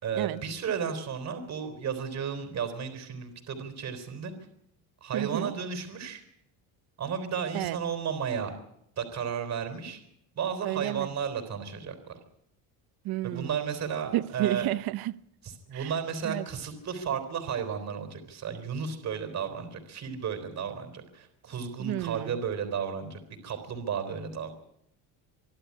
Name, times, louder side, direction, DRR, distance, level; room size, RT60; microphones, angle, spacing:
voice 1, 0.0-4.3 5.0-6.2 7.0-8.5 9.0-10.0 10.4-12.2 13.2-14.7 15.4-24.5, right 7 dB, 40° right, 3.8 m, -33 dB
voice 2, 5.1-5.5 7.5-7.8 10.6-11.1 13.0-13.8 14.1-15.2 15.7-15.9 16.2-16.5 21.8-22.4, right 16 dB, 65° right, 0.9 m, -31 dB
25.0 x 12.0 x 9.8 m
cardioid pair, 130°, 40 cm